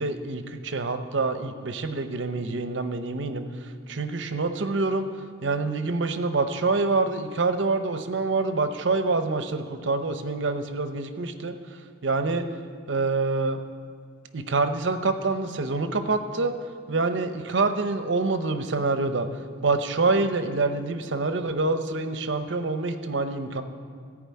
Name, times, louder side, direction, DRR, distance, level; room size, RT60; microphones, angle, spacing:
voice 1, 0.0-3.4 3.9-5.1 5.4-11.5 12.0-12.4 12.9-13.6 14.3-16.5 16.9-19.3 19.6-23.6, right 3 dB, 70° right, 9 dB, 0.8 m, -26 dB
14.0 x 4.9 x 8.4 m, 2.1 s
head